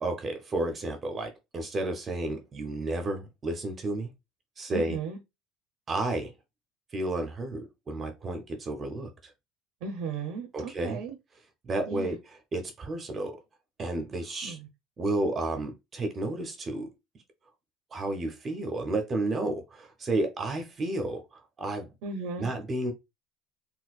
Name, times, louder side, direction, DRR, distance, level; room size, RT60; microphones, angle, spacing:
voice 1, 0.0-4.1 4.6-5.0 5.9-6.3 6.9-9.3 10.5-11.0 11.6-13.4 13.8-14.6 15.0-16.9 17.9-21.9 22.4-22.9, right 2 dB, 20° right, 0.5 m, -32 dB
voice 2, 4.7-5.2 9.8-11.1 11.9-12.2 14.4-14.6 22.0-22.5, right 5 dB, 70° right, 0.6 m, -36 dB
4.1 x 2.1 x 2.3 m
cardioid pair, 170°, 0 cm